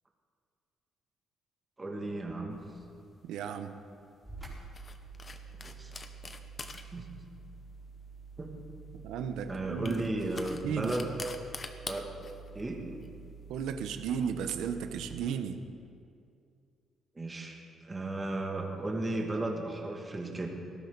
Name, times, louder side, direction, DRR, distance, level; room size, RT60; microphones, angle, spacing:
voice 1, 1.8-2.6 5.6-5.9 6.9-7.1 8.4-8.5 9.5-11.1 11.9-12.1 12.5-13.0 17.2-17.6 17.8-20.5, right 2 dB, 25° right, 0 dB, 2.3 m, -34 dB
sound 1, 2.5-15.2, left 4 dB, 35° left, 1.1 m, -48 dB
voice 2, 3.2-3.8 9.0-10.0 10.6-10.9 13.5-15.6, right 7 dB, 90° right, 9 dB, 0.9 m, -34 dB
sound 2, 4.2-15.3, right 5 dB, 5° right, 4.5 m, -49 dB
18.5 x 13.5 x 4.1 m, 2.4 s
cardioid pair, 90°, 0 cm